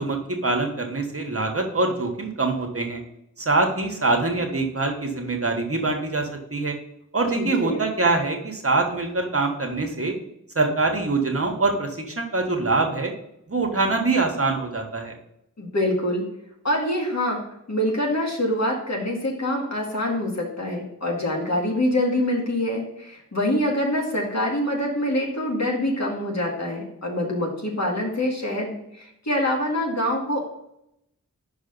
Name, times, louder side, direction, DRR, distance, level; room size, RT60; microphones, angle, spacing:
voice 1, 0.0-3.0 3.4-6.8 7.1-10.2 10.5-13.1 13.5-15.2, right 3 dB, 45° right, 3 dB, 1.3 m, -24 dB
voice 2, 7.4-7.8 15.6-16.2 16.6-17.4 17.7-30.6, left 1 dB, 55° left, -1 dB, 2.0 m, -25 dB
5.8 x 4.8 x 5.4 m, 0.80 s
wide cardioid pair, 50°, 32 cm